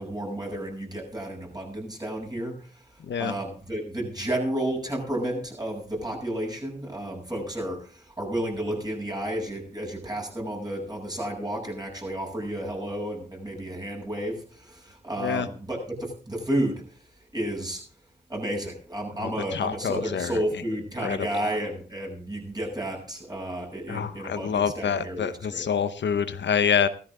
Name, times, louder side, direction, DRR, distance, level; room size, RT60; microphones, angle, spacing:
voice 1, 0.0-16.8 17.3-17.8 18.3-25.6, right 1 dB, 20° right, 0 dB, 7.6 m, -32 dB
voice 2, 3.0-3.3 15.2-15.5 19.2-20.4 21.0-21.4 23.9-26.9, left 7 dB, 80° left, 12 dB, 0.9 m, -27 dB
15.5 x 13.5 x 3.7 m, 0.40 s
cardioid pair, 50°, 18 cm